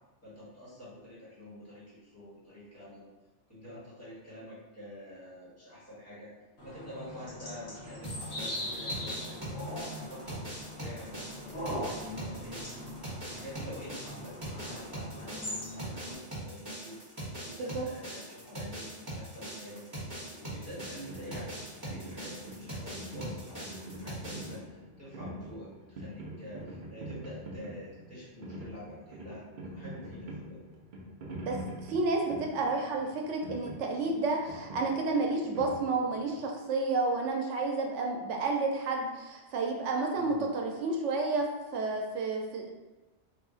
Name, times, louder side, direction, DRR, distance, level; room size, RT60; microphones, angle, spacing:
voice 1, 0.2-3.1 3.5-6.3 6.6-10.5 10.8-17.0 17.5-19.9 20.3-30.6 40.1-40.5, left 1 dB, 15° left, -11 dB, 1.4 m, -47 dB
sound 1, 6.6-16.1, left 1 dB, 70° left, 1.3 m, -40 dB
sound 2, 8.0-24.5, right 1 dB, 20° right, 1.2 m, -41 dB
sound 3, 20.7-36.4, equal, 55° right, 0.6 m, -44 dB
voice 2, 31.5-42.7, right 3 dB, 85° right, 1 dB, 0.9 m, -31 dB
3.1 x 2.4 x 3.7 m, 1.1 s
omnidirectional pair, 1.2 m